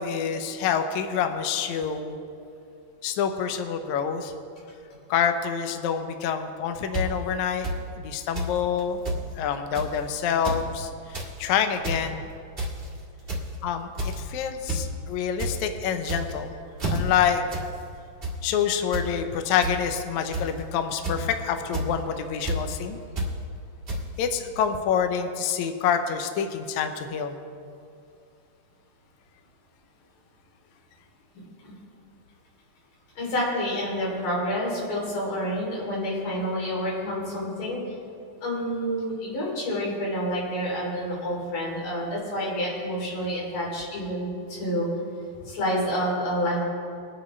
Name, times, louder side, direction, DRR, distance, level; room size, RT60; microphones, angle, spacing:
voice 1, 0.0-2.2 3.0-4.3 5.1-7.7 8.0-9.0 9.4-12.3 13.6-16.6 16.9-17.4 18.4-23.0 24.2-27.4, left 7 dB, 85° left, 7 dB, 1.6 m, -27 dB
sound 1, 6.9-7.0 7.6-7.7 8.3-8.5 8.8-8.9 9.0-9.2 9.7-10.0 10.3-10.6 11.0-11.3 11.7-12.0 12.6-12.9 13.3-13.5 14.0-14.2 14.7-14.8 15.1-15.5 16.0-16.4 16.8-17.0 17.5-17.7 18.0-18.3 18.9-19.1 19.6-19.7 20.3-20.6 21.0-21.3 21.7-21.9 22.4-22.6 23.2-23.3 23.9-24.0, right 1 dB, 50° right, 0.6 m, -29 dB
voice 2, 33.2-37.8 38.4-44.9 45.4-46.6, equal, 60° left, -4 dB, 4.7 m, -28 dB
22.5 x 9.0 x 3.2 m, 2.4 s
omnidirectional pair, 4.4 m